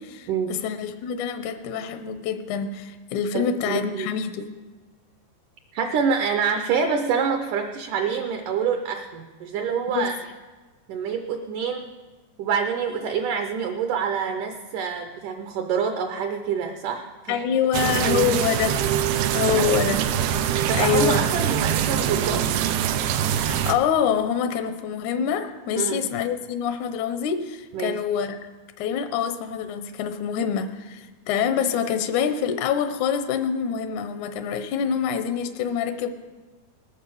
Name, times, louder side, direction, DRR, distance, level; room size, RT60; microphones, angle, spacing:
voice 1, 0.0-4.5 9.9-10.1 17.3-18.9 19.3-20.0 20.7-21.2 23.4-28.4 28.8-36.1, left 8 dB, 80° left, 8 dB, 1.7 m, -26 dB
voice 2, 3.3-4.1 5.7-10.2 10.9-11.8 12.4-17.4 17.8-18.4 19.6-19.7 20.7-22.5 25.8-26.0 27.7-28.0, right 6 dB, 70° right, 5 dB, 2.1 m, -26 dB
sound 1, 17.7-23.7, right 9 dB, 90° right, 2.7 m, -23 dB
19.0 x 8.6 x 7.0 m, 1.3 s
omnidirectional pair, 4.3 m